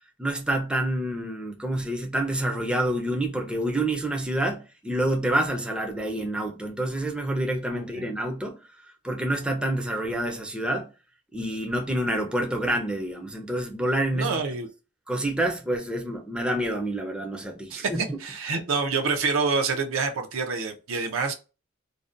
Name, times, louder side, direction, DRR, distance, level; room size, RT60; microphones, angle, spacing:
voice 1, 0.2-8.6 9.0-10.9 11.3-14.3 15.1-18.0, right 1 dB, 5° right, 0.4 m, -27 dB
voice 2, 7.7-8.1 14.1-14.7 17.7-21.3, right 4 dB, 80° right, 0.5 m, -27 dB
2.5 x 2.1 x 2.5 m
head